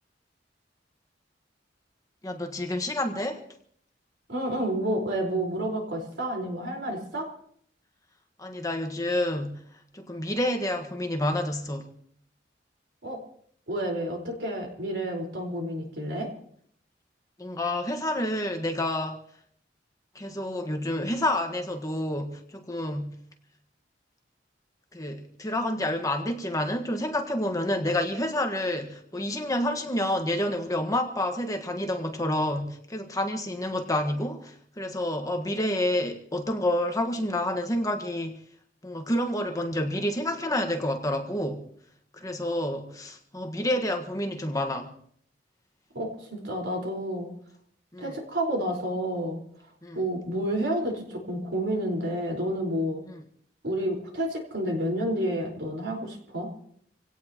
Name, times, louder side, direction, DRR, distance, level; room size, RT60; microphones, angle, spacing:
voice 1, 2.2-3.4 8.4-9.6 9.9-11.9 17.4-19.2 20.1-23.2 24.9-38.4 38.8-41.6 42.1-44.9 47.9-48.2 49.8-50.0 53.1-53.2, left 1 dB, 20° left, 5 dB, 1.4 m, -29 dB
voice 2, 4.3-7.3 13.0-13.2 13.7-16.3 45.9-47.3 48.0-49.4 49.9-53.0 53.6-56.5, right 1 dB, 70° right, 1 dB, 4.6 m, -30 dB
26.0 x 17.0 x 3.0 m, 0.64 s
head